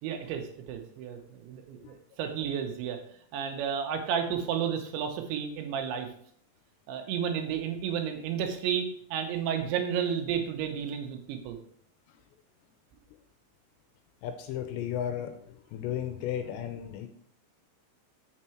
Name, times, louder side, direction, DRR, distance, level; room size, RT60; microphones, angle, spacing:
voice 1, 0.0-3.0 3.3-6.1 6.9-11.6, right 8 dB, 80° right, 5 dB, 3.1 m, -32 dB
voice 2, 14.2-15.4 15.7-17.1, left 10 dB, 85° left, 8 dB, 2.7 m, -34 dB
7.4 x 6.5 x 4.4 m, 0.63 s
omnidirectional pair, 5.5 m